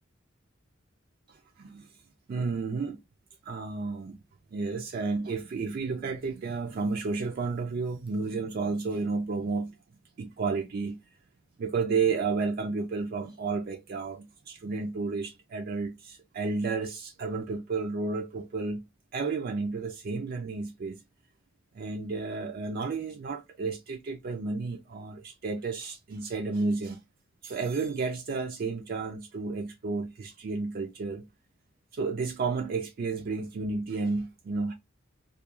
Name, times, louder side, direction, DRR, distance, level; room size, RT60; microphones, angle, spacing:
voice 1, 2.3-3.0 3.4-4.2 4.5-9.7 10.2-11.0 11.6-18.8 19.1-21.0 21.7-27.0 27.4-31.3 31.9-34.7, right 4 dB, 50° right, 0.3 m, -32 dB
2.3 x 2.2 x 2.9 m
head